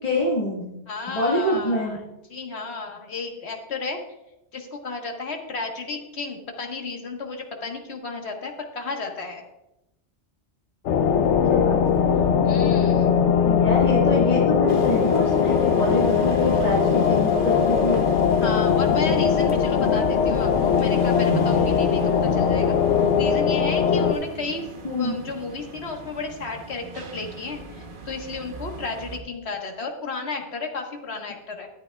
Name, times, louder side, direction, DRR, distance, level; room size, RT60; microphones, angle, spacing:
voice 1, 0.0-0.8 1.1-2.0 11.5-12.4 13.4-18.1 24.8-25.2, left 1 dB, 35° left, -5 dB, 1.7 m, -25 dB
voice 2, 0.9-2.0 2.3-4.0 4.5-9.4 12.4-13.1 18.4-22.8 23.2-24.7 25.0-31.7, left 3 dB, 65° left, 2 dB, 1.6 m, -33 dB
sound 1, 10.9-24.1, left 7 dB, 85° left, 0.9 m, -20 dB
sound 2, 14.7-29.2, right 4 dB, 50° right, 1.1 m, -37 dB
12.5 x 10.5 x 2.3 m, 0.90 s
omnidirectional pair, 1.2 m